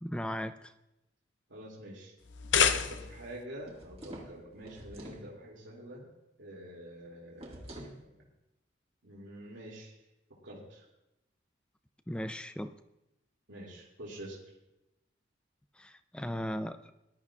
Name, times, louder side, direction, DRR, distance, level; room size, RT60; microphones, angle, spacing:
voice 1, 0.0-0.7 12.1-12.7 15.8-16.9, equal, 5° left, 10 dB, 0.4 m, -37 dB
voice 2, 1.5-2.1 2.6-6.0 6.4-8.2 9.0-9.9 10.4-10.8 13.5-14.4, right 1 dB, 90° right, -5 dB, 2.4 m, -47 dB
sound 1, 2.2-3.4, left 7 dB, 75° left, 0.6 m, -28 dB
sound 2, 3.6-5.3 7.4-8.0, right 1 dB, 30° right, 1.8 m, -47 dB
19.5 x 12.0 x 2.4 m, 0.92 s
head